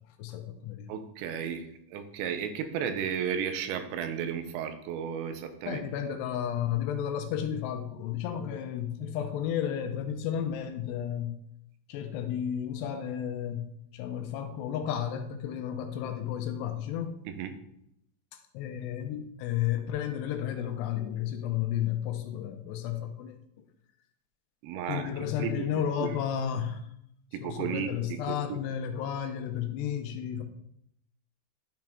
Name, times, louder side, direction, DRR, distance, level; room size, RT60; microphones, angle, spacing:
voice 1, 0.2-0.9 5.7-11.3 11.9-13.7 13.9-17.2 18.5-23.3 24.9-26.8 27.4-30.4, left 9 dB, 80° left, 6 dB, 2.7 m, -32 dB
voice 2, 0.9-5.8 17.4-17.5 24.6-25.1 25.4-25.7 26.0-26.2 27.3-28.6, right 8 dB, 85° right, 8 dB, 3.1 m, -34 dB
12.0 x 4.5 x 3.5 m, 0.75 s
omnidirectional pair, 5.1 m